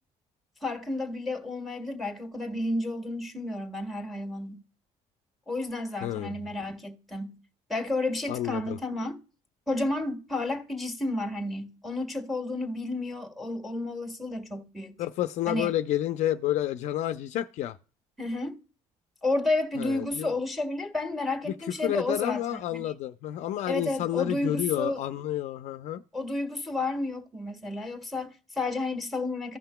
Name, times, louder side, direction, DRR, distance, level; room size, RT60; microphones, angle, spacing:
voice 1, 0.6-4.6 5.5-7.4 7.7-9.2 9.7-15.0 15.5-15.7 18.2-18.6 19.2-22.8 23.7-25.0 26.1-29.6, left 2 dB, ahead, 1.5 m, -31 dB
voice 2, 6.0-6.4 8.3-8.8 15.0-17.8 19.8-20.3 21.5-21.6 21.8-26.0, left 13 dB, 65° left, 0.5 m, -30 dB
16.0 x 5.8 x 2.2 m
cardioid pair, 135°, 13 cm